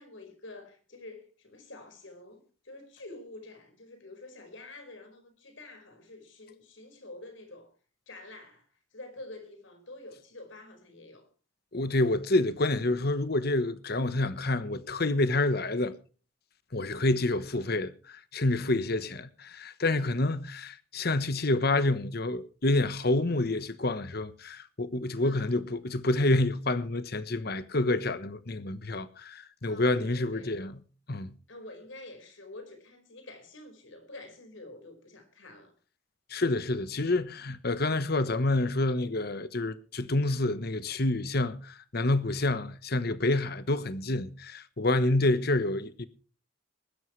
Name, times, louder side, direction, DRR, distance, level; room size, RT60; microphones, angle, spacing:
voice 1, 0.0-7.8 8.1-11.3 25.2-25.6 29.7-30.5 31.5-35.7, left 2 dB, 75° left, 5.2 m, -48 dB
voice 2, 11.7-15.9 16.7-30.8 31.1-31.3 36.3-46.1, left 2 dB, 50° left, 1.1 m, -28 dB
21.5 x 12.5 x 3.2 m
head